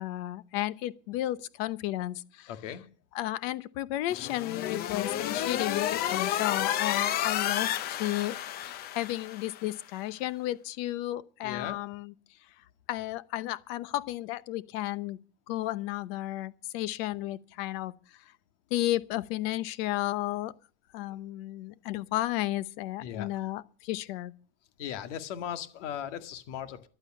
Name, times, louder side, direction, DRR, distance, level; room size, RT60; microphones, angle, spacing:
voice 1, 0.0-2.5 3.1-8.4 8.6-12.1 12.9-15.2 15.5-17.9 18.7-20.5 20.9-24.3, left 15 dB, 55° left, 0.9 m, -33 dB
voice 2, 2.5-2.9 11.4-11.8 23.0-23.3 24.8-26.9, left 9 dB, 85° left, 2.0 m, -37 dB
sound 1, 4.1-9.7, left 11 dB, 25° left, 0.6 m, -31 dB
15.0 x 11.5 x 5.5 m
cardioid pair, 175°, 35 cm